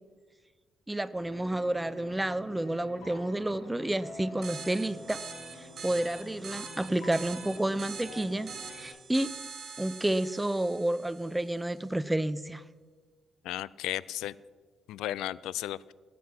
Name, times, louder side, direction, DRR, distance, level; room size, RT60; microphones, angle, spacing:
voice 1, 0.9-5.2 5.6-9.3 9.8-12.6, right 1 dB, 10° right, 16 dB, 0.5 m, -30 dB
sound 1, 1.1-8.9, left 1 dB, 65° left, 4.0 m, -47 dB
sound 2, 4.4-11.6, right 5 dB, 50° right, 2.3 m, -44 dB
voice 2, 13.4-14.3 14.9-15.9, left 13 dB, 90° left, 21 dB, 0.3 m, -34 dB
19.0 x 7.6 x 6.0 m, 1.5 s
cardioid pair, 90°, 0 cm